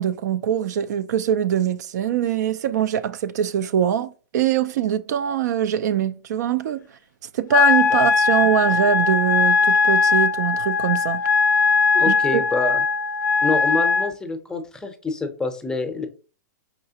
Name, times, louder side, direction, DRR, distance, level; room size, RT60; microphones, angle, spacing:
voice 1, 0.0-6.8 7.3-11.2 12.1-12.4, right 9 dB, 65° right, 0.4 m, -23 dB
Wind instrument woodwind instrument, 7.5-14.1, left 5 dB, 80° left, 0.4 m, -19 dB
voice 2, 11.9-12.8 13.4-16.1, left 3 dB, 5° left, 0.6 m, -27 dB
4.9 x 3.1 x 2.8 m
hypercardioid pair, 130°, 10 cm